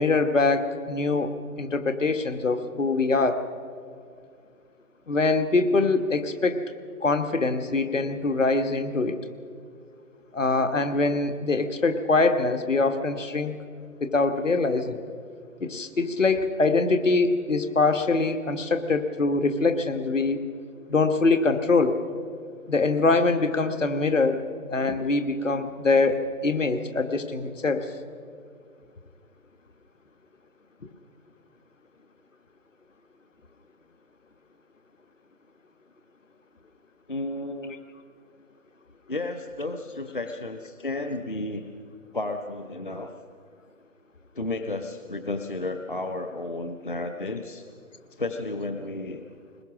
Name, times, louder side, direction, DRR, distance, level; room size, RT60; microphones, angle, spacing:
voice 1, 0.0-1.3 1.6-3.4 5.1-6.6 7.0-9.2 10.3-13.5 14.0-15.0 15.6-20.4 20.9-22.0 22.7-24.4 24.7-27.9, left 3 dB, 55° left, 8 dB, 1.5 m, -23 dB
voice 2, 37.1-37.8 39.1-41.7 42.1-43.1 44.4-47.7 48.1-49.2, left 2 dB, 35° left, 7 dB, 0.7 m, -32 dB
21.0 x 20.5 x 6.1 m, 2.2 s
figure-of-eight pair, 155°, 44 cm